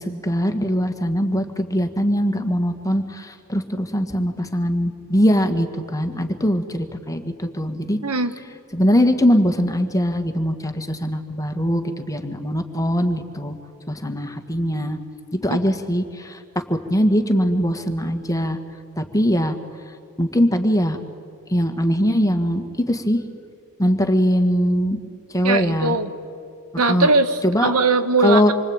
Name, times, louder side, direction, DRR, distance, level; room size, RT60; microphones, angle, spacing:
voice 1, 0.0-8.0 8.7-13.5 13.9-15.0 15.3-16.4 16.7-18.6 19.0-19.6 20.2-21.0 21.5-23.2 23.8-25.0 25.3-26.0 26.9-27.1 27.4-27.7 28.2-28.5, equal, 15° left, 6 dB, 1.8 m, -21 dB
voice 2, 8.0-8.3 15.5-15.6 25.4-26.1 26.8-28.5, right 3 dB, 85° right, 9 dB, 1.6 m, -20 dB
27.0 x 24.0 x 8.9 m, 2.4 s
head